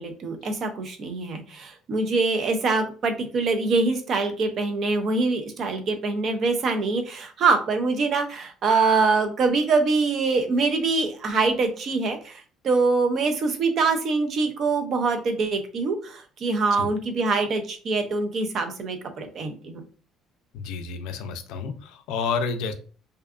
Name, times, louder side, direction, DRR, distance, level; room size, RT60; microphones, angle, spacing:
voice 1, 0.0-19.8, right 3 dB, 40° right, 0.4 m, -24 dB
voice 2, 20.5-22.7, left 5 dB, 85° left, 0.3 m, -30 dB
2.6 x 2.2 x 2.3 m
cardioid pair, 170°, 0 cm